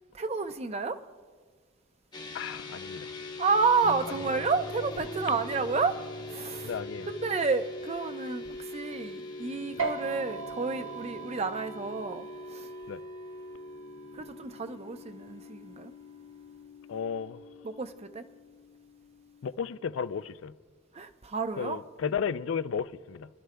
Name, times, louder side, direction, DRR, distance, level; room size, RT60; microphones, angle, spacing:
voice 1, 0.1-1.0 3.4-6.0 6.3-6.7 7.1-12.3 12.5-12.7 14.1-15.9 17.6-18.2 20.9-21.8, right 4 dB, 35° right, 0.5 m, -30 dB
sound 1, 2.1-19.5, left 2 dB, 20° left, 1.0 m, -43 dB
voice 2, 2.3-3.1 4.2-4.3 5.3-5.4 6.6-7.1 9.8-9.9 12.9-13.0 16.9-17.4 19.4-20.5 21.6-23.3, left 6 dB, 75° left, 0.4 m, -34 dB
sound 2, 3.8-7.9, equal, 5° right, 0.8 m, -45 dB
sound 3, 9.8-16.6, right 5 dB, 85° right, 1.4 m, -41 dB
25.5 x 12.5 x 2.2 m
head